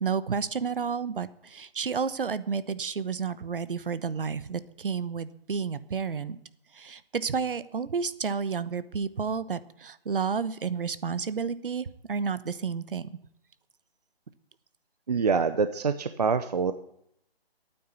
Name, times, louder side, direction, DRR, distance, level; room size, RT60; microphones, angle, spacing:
voice 1, 0.0-6.4 6.7-13.1, right 6 dB, 60° right, 15 dB, 1.1 m, -31 dB
voice 2, 15.1-16.7, right 5 dB, 40° right, 11 dB, 0.7 m, -25 dB
13.0 x 9.4 x 8.4 m, 0.74 s
hypercardioid pair, 165°, 31 cm